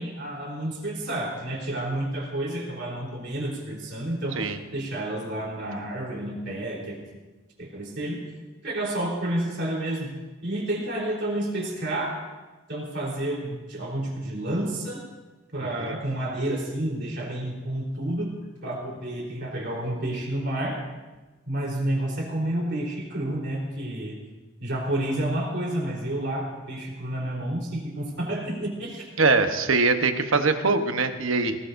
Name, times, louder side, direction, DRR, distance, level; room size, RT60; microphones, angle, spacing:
voice 1, 0.0-4.4 4.7-7.0 7.6-8.2 8.6-10.2 10.4-12.1 12.7-15.0 15.5-18.3 18.6-20.8 21.5-24.2 24.6-29.1, right 1 dB, 55° right, -2 dB, 3.9 m, -30 dB
voice 2, 29.2-31.6, right 3 dB, 75° right, 7 dB, 1.1 m, -22 dB
19.0 x 18.5 x 2.6 m, 1.2 s
head